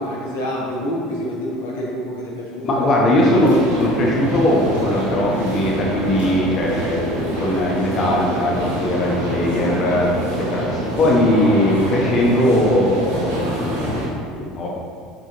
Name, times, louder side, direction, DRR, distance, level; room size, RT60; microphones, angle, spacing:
voice 1, 0.0-3.8 6.8-7.2 10.1-10.5, equal, 75° left, -4 dB, 1.2 m, -29 dB
voice 2, 2.6-14.7, left 1 dB, 45° left, -2 dB, 1.1 m, -19 dB
sound 1, 3.2-14.1, right 1 dB, 85° right, 1.6 m, -26 dB
6.6 x 5.9 x 3.0 m, 2.2 s
figure-of-eight pair, 70°, 0 cm